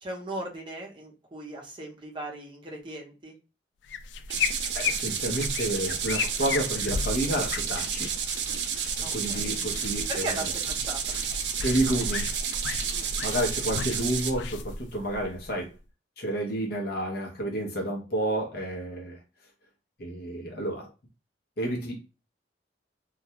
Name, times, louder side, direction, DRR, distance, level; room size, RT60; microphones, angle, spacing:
voice 1, 0.0-3.3 9.0-9.5 10.1-11.0 12.9-13.1, right 1 dB, 30° right, -1 dB, 0.7 m, -38 dB
sound 1, 3.8-15.8, left 5 dB, 75° left, 0.3 m, -35 dB
sound 2, 4.3-14.3, right 7 dB, 70° right, 0.4 m, -31 dB
voice 2, 4.7-8.1 9.1-10.5 11.6-12.3 13.2-15.7 16.2-19.2 20.0-20.9 21.6-22.0, right 1 dB, 60° left, 0 dB, 0.8 m, -30 dB
2.4 x 2.2 x 2.8 m, 0.29 s
head